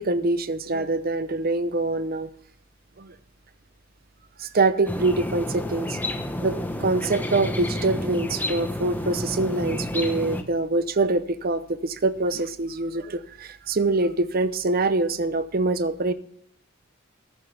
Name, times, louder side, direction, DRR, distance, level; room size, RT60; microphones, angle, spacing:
voice 1, 0.0-2.3 3.0-3.1 4.4-6.0 6.4-16.1, right 2 dB, 45° right, 12 dB, 0.8 m, -24 dB
sound 1, 4.9-10.4, left 1 dB, 10° left, 1.0 m, -30 dB
14.0 x 11.0 x 3.4 m, 0.63 s
head